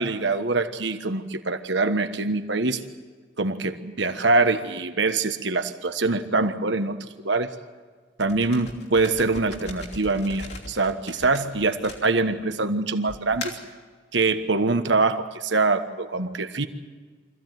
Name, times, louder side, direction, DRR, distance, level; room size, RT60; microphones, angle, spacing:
voice 1, 0.0-2.8 3.4-7.5 8.2-13.6 14.1-16.7, right 3 dB, 70° right, 8 dB, 1.3 m, -24 dB
sound 1, 8.2-12.5 13.1-13.7, left 2 dB, 60° left, 3.1 m, -39 dB
25.0 x 15.5 x 9.3 m, 1.5 s
head